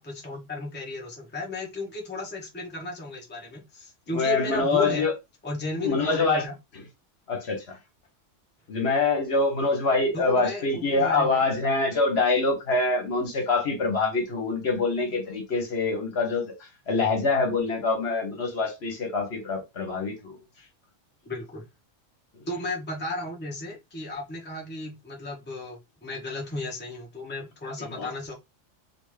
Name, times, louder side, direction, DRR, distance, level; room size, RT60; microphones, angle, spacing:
voice 1, 0.0-5.1 5.4-6.5 10.1-11.4 21.2-21.6 22.5-28.3, left 2 dB, 10° left, 0.7 m, -34 dB
voice 2, 4.1-5.1 5.8-6.5 7.3-7.8 8.7-20.4 27.8-28.1, left 3 dB, 60° left, 1.1 m, -25 dB
3.4 x 2.5 x 3.1 m
omnidirectional pair, 1.3 m